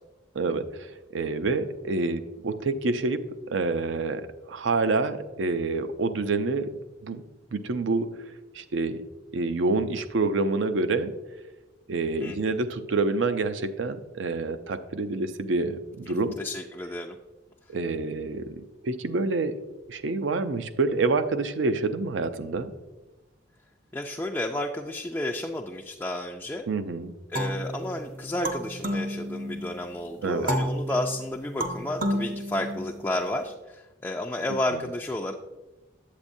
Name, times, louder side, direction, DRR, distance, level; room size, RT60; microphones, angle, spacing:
voice 1, 0.3-3.2 3.5-6.7 7.0-7.2 7.5-8.1 8.5-9.0 9.3-11.1 11.9-16.4 17.7-19.6 19.9-22.7 26.7-27.1 30.2-30.5 34.5-34.6, right 3 dB, 75° right, 10 dB, 0.5 m, -27 dB
voice 2, 12.2-12.5 16.4-17.2 23.9-26.6 27.3-35.3, left 1 dB, 10° left, 1 dB, 0.3 m, -31 dB
sound 1, 27.3-29.8 30.5-33.3, equal, 45° right, 0.7 m, -31 dB
8.5 x 8.2 x 2.6 m, 1.1 s
head